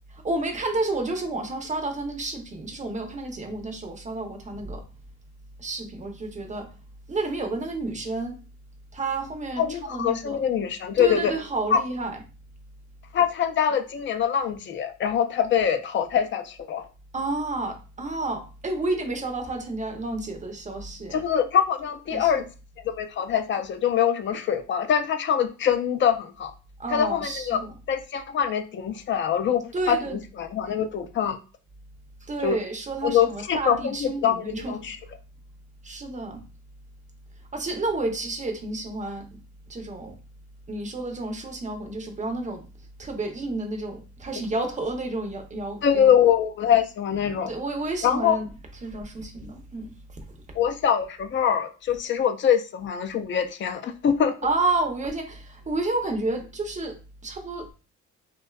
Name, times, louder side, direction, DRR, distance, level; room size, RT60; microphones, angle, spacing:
voice 1, 0.2-4.8 5.6-6.7 7.1-8.4 8.9-10.4 11.0-12.2 17.1-21.2 22.1-22.4 26.8-27.7 29.7-30.2 32.2-34.8 35.8-36.4 37.5-39.4 39.7-40.2 40.7-42.6 43.0-46.1 47.5-48.5 48.8-50.0 54.4-57.0 57.2-57.7, right 2 dB, 25° right, 4 dB, 0.5 m, -30 dB
voice 2, 9.6-11.3 11.7-11.8 13.1-16.9 21.1-22.4 22.8-26.5 26.9-27.6 27.9-31.4 32.4-32.6 33.0-35.0 45.8-47.5 48.0-48.4 50.5-54.4, left 8 dB, 40° left, 8 dB, 0.4 m, -24 dB
2.5 x 2.2 x 2.2 m, 0.34 s
cardioid pair, 90°, 30 cm